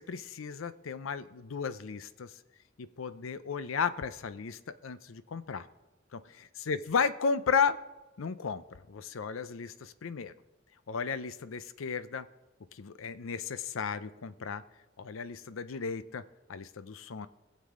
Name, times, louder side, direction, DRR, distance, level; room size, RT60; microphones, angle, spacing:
voice 1, 0.0-2.3 2.8-5.7 6.1-6.2 6.7-7.8 8.2-8.6 8.9-10.3 10.9-12.3 12.7-14.6 15.0-16.2 16.5-17.3, left 5 dB, 85° left, 14 dB, 0.5 m, -34 dB
21.5 x 7.5 x 3.7 m, 1.1 s
head